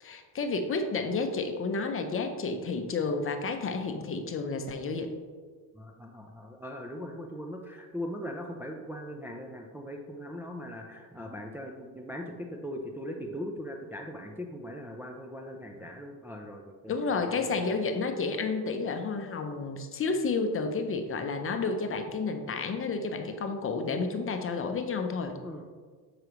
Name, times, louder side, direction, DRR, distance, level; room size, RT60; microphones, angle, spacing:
voice 1, 0.0-5.1 16.9-25.4, left 4 dB, 30° left, 6 dB, 0.7 m, -31 dB
voice 2, 5.7-17.7 25.4-25.6, equal, 5° right, 1 dB, 0.4 m, -40 dB
6.4 x 4.8 x 3.0 m, 1.5 s
supercardioid pair, 95°, 41 cm